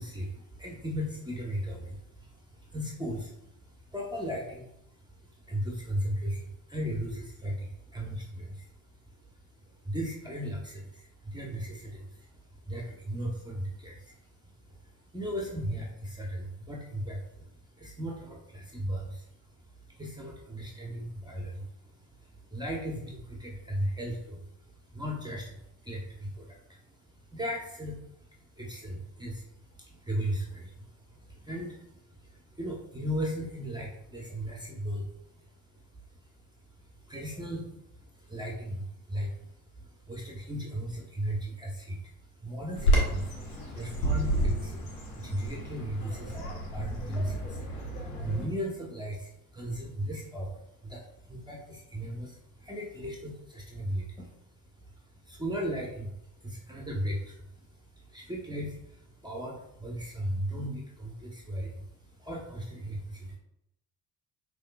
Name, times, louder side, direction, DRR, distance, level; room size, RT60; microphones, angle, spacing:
voice 1, 0.0-54.3 54.7-63.4, equal, 10° right, -2 dB, 1.0 m, -37 dB
Bird vocalization bird call bird song, 42.8-48.4, right 1 dB, 90° left, 1.1 m, -30 dB
5.4 x 3.2 x 2.3 m, 0.81 s
supercardioid pair, 60°, 42 cm